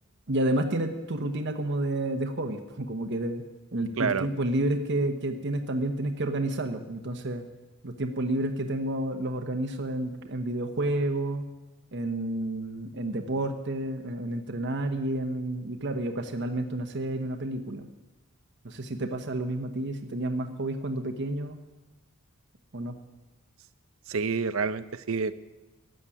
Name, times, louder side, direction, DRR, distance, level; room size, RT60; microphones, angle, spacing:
voice 1, 0.3-3.4 3.7-7.4 7.8-11.5 11.9-17.9 18.6-21.6 22.7-23.0, right 1 dB, 55° right, 5 dB, 1.1 m, -30 dB
voice 2, 24.1-25.4, right 5 dB, 70° right, 14 dB, 0.7 m, -28 dB
13.5 x 7.8 x 9.9 m, 1.1 s
head